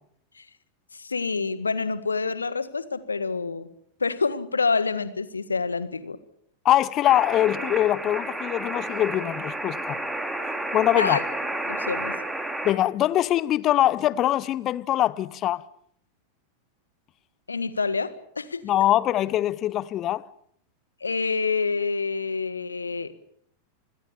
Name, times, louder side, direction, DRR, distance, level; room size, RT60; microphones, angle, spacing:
voice 1, 0.9-3.7 4.0-6.2 10.9-11.2 11.7-12.2 17.5-18.6 21.0-23.4, left 4 dB, 75° left, 1.7 m, -27 dB
voice 2, 6.6-10.0 10.7-11.2 12.6-15.6 18.6-20.2, left 13 dB, 35° left, 0.9 m, -23 dB
sound 1, 7.0-12.7, right 1 dB, 5° right, 3.4 m, -31 dB
26.5 x 21.5 x 7.0 m
figure-of-eight pair, 90°, 0 cm